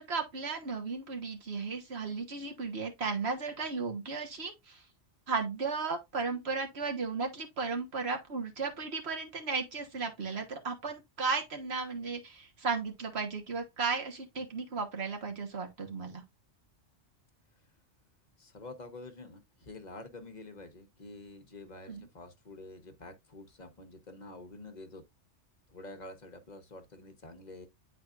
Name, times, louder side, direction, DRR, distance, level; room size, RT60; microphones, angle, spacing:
voice 1, 0.0-4.8 5.3-16.2 21.9-22.1, right 4 dB, 60° right, 1.6 m, -35 dB
voice 2, 18.4-25.0 25.7-27.7, left 2 dB, 40° left, 1.1 m, -48 dB
9.5 x 4.2 x 2.5 m
omnidirectional pair, 1.2 m